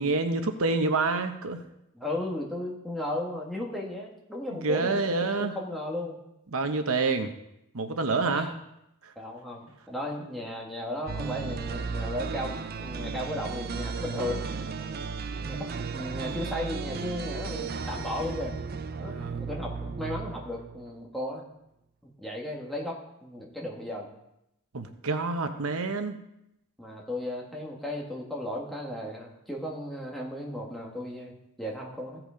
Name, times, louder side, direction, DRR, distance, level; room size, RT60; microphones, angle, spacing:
voice 1, 0.0-1.6 4.5-5.5 6.5-7.3 7.7-8.5 9.0-9.1 19.0-19.4 24.7-26.2, right 3 dB, 85° right, 7 dB, 0.9 m, -27 dB
voice 2, 1.9-6.1 8.3-8.5 9.1-12.5 12.8-14.4 15.4-18.5 19.0-21.4 22.0-24.1 26.8-32.2, left 1 dB, ahead, -2 dB, 1.7 m, -35 dB
sound 1, 11.1-20.9, right 5 dB, 45° right, 0.5 m, -35 dB
15.5 x 5.9 x 5.1 m, 0.84 s
head